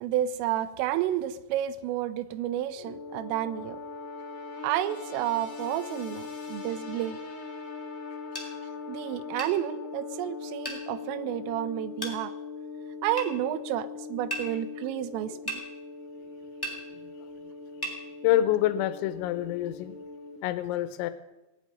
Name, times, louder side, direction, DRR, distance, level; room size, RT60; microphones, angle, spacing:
voice 1, 0.0-3.8 4.6-7.2 8.9-12.3 13.0-15.6, right 12 dB, 85° right, 15 dB, 3.2 m, -31 dB
sound 1, 2.7-20.4, left 4 dB, 45° left, 2.3 m, -41 dB
sound 2, 8.3-8.5 9.4-9.6 10.6-10.8 12.0-12.2 13.2-13.3 14.3-14.5 15.5-15.6 16.6-16.8 17.8-18.0, right 1 dB, 10° left, 1.4 m, -34 dB
voice 2, 18.2-20.0 20.4-21.1, left 12 dB, 85° left, 12 dB, 3.6 m, -27 dB
18.0 x 7.6 x 10.0 m, 0.99 s
omnidirectional pair, 5.9 m